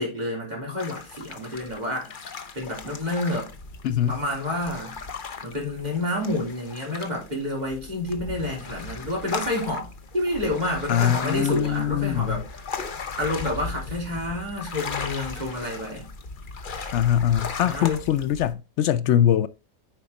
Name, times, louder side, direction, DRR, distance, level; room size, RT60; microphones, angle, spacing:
voice 1, 0.0-3.5 4.1-5.0 5.4-12.4 13.2-16.1 17.6-18.0, left 1 dB, 25° right, 3.5 m, -29 dB
sound 1, 0.8-18.5, left 4 dB, 40° left, 0.7 m, -37 dB
voice 2, 3.8-4.2 10.9-12.4 16.9-19.5, left 10 dB, 80° left, 0.6 m, -22 dB
9.4 x 4.8 x 4.0 m
omnidirectional pair, 1.8 m